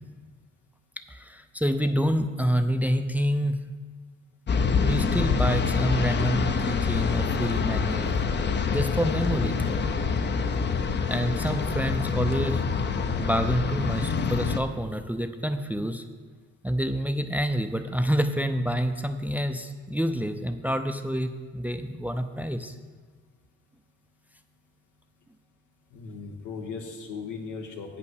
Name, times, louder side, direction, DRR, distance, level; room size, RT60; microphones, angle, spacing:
voice 1, 1.1-3.7 4.8-8.1 8.7-9.6 11.1-12.6 13.2-16.1 16.6-22.7, equal, 5° right, 8 dB, 0.5 m, -27 dB
sound 1, 4.5-14.6, left 5 dB, 35° left, 0.7 m, -26 dB
voice 2, 25.9-28.0, left 5 dB, 85° left, 3 dB, 1.4 m, -37 dB
8.3 x 5.8 x 6.2 m, 1.5 s
cardioid pair, 90°, 30 cm